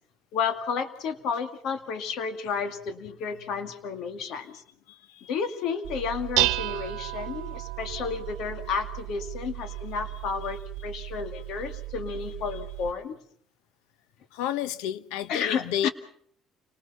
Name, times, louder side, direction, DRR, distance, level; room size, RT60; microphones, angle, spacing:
voice 1, 0.3-4.6 5.3-13.2 15.3-15.9, left 6 dB, 70° left, 2.2 m, -31 dB
voice 2, 4.9-5.2 9.7-9.8 14.3-15.9, left 11 dB, 90° left, 0.9 m, -31 dB
Dishes pots and pans, 5.8-12.9, right 18 dB, 80° right, 1.0 m, -33 dB
28.5 x 20.0 x 5.7 m
supercardioid pair, 95°, 0 cm